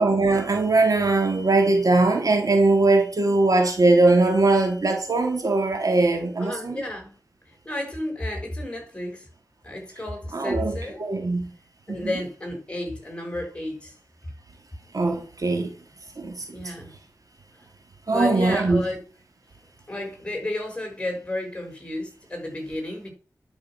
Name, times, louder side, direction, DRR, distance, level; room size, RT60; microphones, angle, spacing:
voice 1, 0.0-6.8 10.3-11.5 12.0-12.1 14.9-15.7 16.2-16.4 18.1-18.8, right 2 dB, 60° right, 3.0 m, -21 dB
voice 2, 6.4-7.1 7.5-9.3 9.6-11.0 11.9-13.9 16.5-16.9 18.1-19.0 19.9-23.1, left 1 dB, 15° left, 6.1 m, -32 dB
11.5 x 6.6 x 6.2 m
cardioid pair, 50°, 7 cm